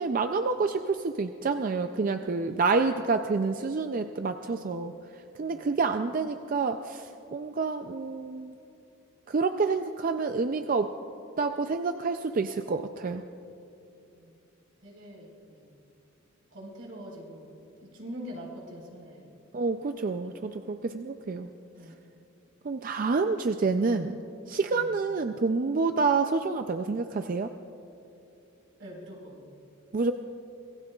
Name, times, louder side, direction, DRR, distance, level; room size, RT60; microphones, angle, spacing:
voice 1, 0.0-4.9 5.4-8.5 9.3-10.9 11.4-13.2 19.5-21.5 22.6-24.2 24.5-27.5 29.9-30.1, right 4 dB, 40° right, 7 dB, 0.4 m, -28 dB
voice 2, 2.4-2.7 5.5-5.7 14.1-14.4 14.8-15.7 16.5-19.3 21.8-22.0 24.7-25.0 28.8-29.4, equal, 80° right, -2 dB, 4.3 m, -44 dB
26.0 x 19.0 x 2.4 m, 2.8 s
head